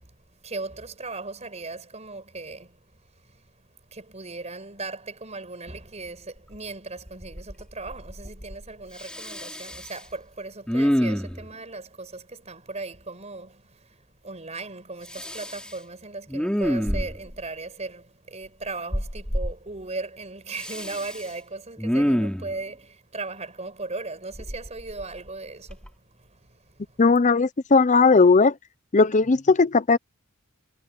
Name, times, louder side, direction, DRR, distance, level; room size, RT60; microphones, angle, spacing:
voice 1, 0.0-27.0, right 3 dB, 30° right, 5.3 m, -38 dB
Respiratory sounds, 6.5-6.6 7.1-7.6 7.9-8.6 9.0-10.0 10.7-11.5 15.1-15.7 16.3-17.4 18.9-19.5 20.6-21.3 21.8-22.5 24.4-25.3 25.7-25.9, equal, 5° left, 3.2 m, -27 dB
voice 2, 27.0-28.5 28.9-30.0, left 4 dB, 35° left, 0.6 m, -17 dB
head